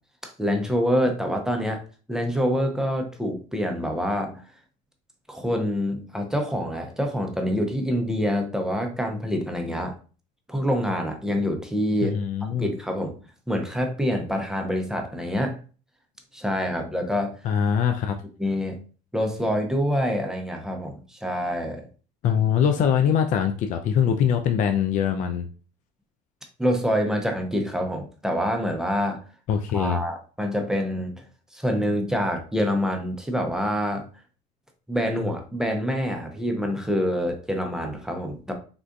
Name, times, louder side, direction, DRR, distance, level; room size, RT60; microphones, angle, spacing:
voice 1, 0.4-1.8 2.1-4.4 5.3-9.9 10.5-12.2 12.6-13.2 13.5-15.6 16.3-17.3 18.4-18.8 19.1-21.8 26.6-29.2 29.7-31.2 31.5-34.0 34.9-38.5, equal, 5° right, 3 dB, 0.6 m, -26 dB
voice 2, 12.0-12.7 17.4-18.2 22.2-25.5 29.5-30.0, left 8 dB, 50° left, 6 dB, 0.4 m, -23 dB
3.6 x 2.5 x 2.2 m, 0.38 s
supercardioid pair, 90°, 17 cm